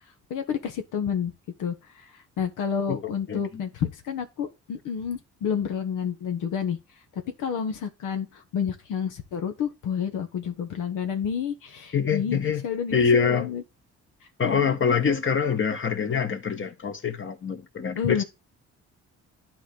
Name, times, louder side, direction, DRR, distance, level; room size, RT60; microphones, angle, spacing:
voice 1, 0.3-1.3 1.6-6.8 7.4-13.6 14.4-14.8 17.9-18.2, left 7 dB, 85° left, 1.5 m, -30 dB
voice 2, 3.3-3.6 11.9-12.6 12.9-13.5 14.4-18.2, left 6 dB, 40° left, 1.7 m, -25 dB
11.5 x 4.5 x 3.9 m
cardioid pair, 90°, 30 cm